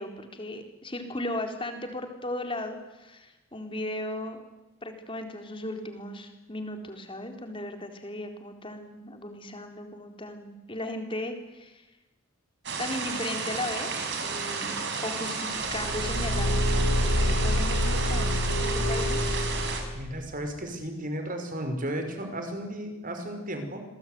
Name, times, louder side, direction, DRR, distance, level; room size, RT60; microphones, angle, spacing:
voice 1, 0.0-4.4 4.8-11.8 12.8-16.7 17.0-18.3 18.6-19.2, left 1 dB, 25° left, 5 dB, 4.1 m, -36 dB
sound 1, 12.6-19.8, right 5 dB, 55° right, 5.7 m, -32 dB
Car / Engine, 15.6-20.1, equal, 80° left, 7.4 m, -27 dB
voice 2, 19.9-23.8, right 1 dB, 40° right, 5 dB, 5.6 m, -34 dB
28.0 x 22.0 x 9.6 m, 1.0 s
head